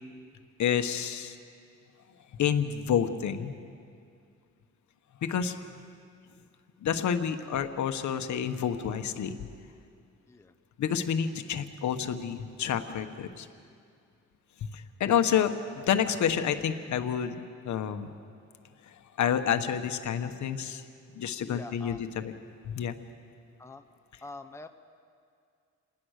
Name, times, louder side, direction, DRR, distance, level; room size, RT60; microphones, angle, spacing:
voice 1, 0.6-1.4 2.4-3.5 5.2-5.5 6.8-9.4 10.8-13.5 14.6-18.2 19.2-20.8 21.1-22.3 22.6-22.9, left 8 dB, 70° left, 8 dB, 1.3 m, -29 dB
voice 2, 21.4-22.0 23.6-23.8 24.2-24.7, left 3 dB, 10° left, 7 dB, 0.8 m, -44 dB
27.5 x 19.5 x 6.6 m, 2.3 s
cardioid pair, 135°, 30 cm